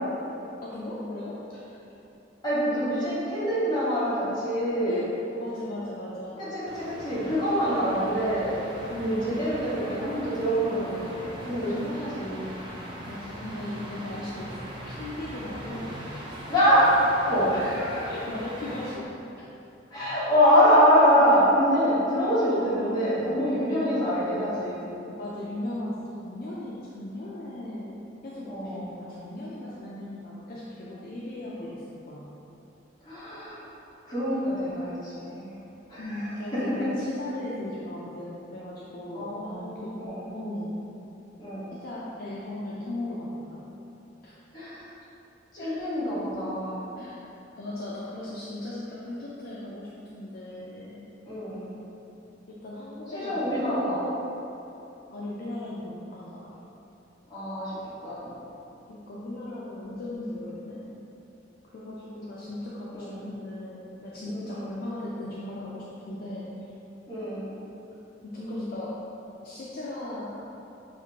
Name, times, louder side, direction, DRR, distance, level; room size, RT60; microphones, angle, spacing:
voice 1, 0.6-1.6 2.9-3.0 4.9-5.1 5.4-6.4 8.9-9.3 11.9-12.0 13.0-16.0 17.6-17.7 18.1-19.2 22.8-23.0 23.8-24.0 25.1-28.0 28.2-32.3 36.0-40.0 40.3-40.9 41.7-43.6 44.2-44.3 45.6-45.8 47.0-47.2 47.6-51.0 52.5-53.9 55.1-56.5 58.9-60.9 61.7-66.6 68.2-69.1 69.4-70.4, left 1 dB, 50° left, -6 dB, 0.4 m, -37 dB
voice 2, 2.4-5.0 6.4-12.5 16.5-18.1 19.9-24.8 28.4-28.9 33.0-33.6 34.0-35.6 35.9-36.9 39.1-40.2 41.4-41.7 44.5-44.9 45.5-46.9 51.2-51.7 53.1-54.0 57.3-57.7 58.0-58.3 62.9-63.2 64.3-64.6 67.1-67.5, equal, 20° left, -11 dB, 1.3 m, -25 dB
sound 1, 6.7-19.0, equal, 25° right, 0.6 m, -41 dB
5.8 x 2.4 x 2.9 m, 3.0 s
head